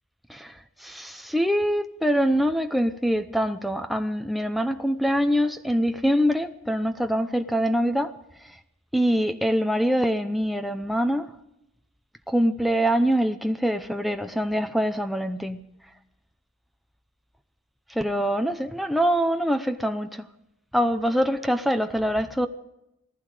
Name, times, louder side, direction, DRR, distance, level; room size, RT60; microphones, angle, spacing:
voice 1, 0.8-8.1 8.9-11.3 12.3-15.6 17.9-20.2 20.7-22.5, equal, ahead, 0.7 m, -24 dB
19.0 x 15.5 x 4.9 m
head